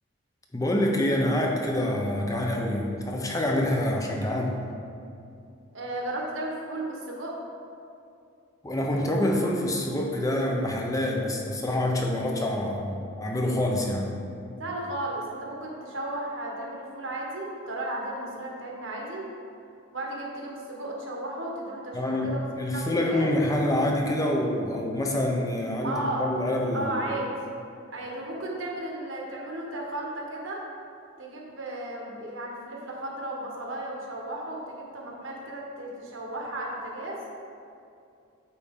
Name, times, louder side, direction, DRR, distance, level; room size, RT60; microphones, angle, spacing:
voice 1, 0.5-4.6 8.6-14.1 21.9-26.9, left 1 dB, 15° left, 0 dB, 0.6 m, -26 dB
voice 2, 5.7-7.4 14.6-19.2 19.9-22.4 22.7-23.3 25.8-26.3 26.7-27.3 27.9-30.6 31.2-37.2, right 1 dB, 75° right, -2 dB, 1.2 m, -34 dB
8.7 x 4.1 x 3.6 m, 2.5 s
head